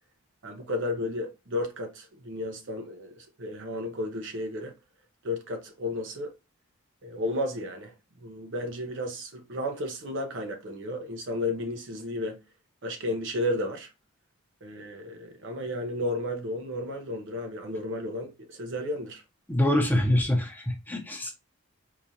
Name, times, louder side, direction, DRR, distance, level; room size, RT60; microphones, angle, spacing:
voice 1, 0.4-4.7 5.2-6.3 7.0-12.4 12.8-13.9 14.6-19.2, left 1 dB, 60° right, 0.7 m, -33 dB
voice 2, 19.5-21.3, left 1 dB, 10° left, 0.7 m, -25 dB
4.7 x 2.4 x 2.7 m
head